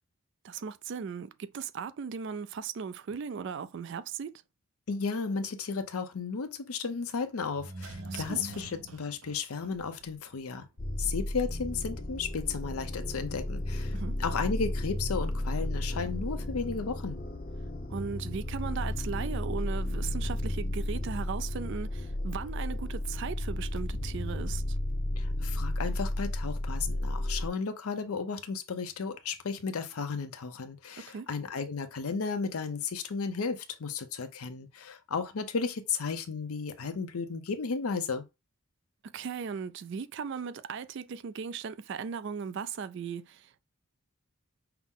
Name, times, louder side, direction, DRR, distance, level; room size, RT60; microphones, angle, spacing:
voice 1, 0.4-4.4 8.1-8.5 13.9-14.1 17.9-24.8 31.0-31.3 39.1-43.6, right 6 dB, 55° right, 0.3 m, -37 dB
voice 2, 4.9-10.7 11.0-17.2 25.2-38.2, left 5 dB, 85° left, 0.6 m, -34 dB
sound 1, 7.5-10.4 10.6-10.7, right 2 dB, 80° right, 0.7 m, -44 dB
sound 2, 10.8-27.5, left 1 dB, 40° left, 0.6 m, -33 dB
5.7 x 2.0 x 3.6 m
head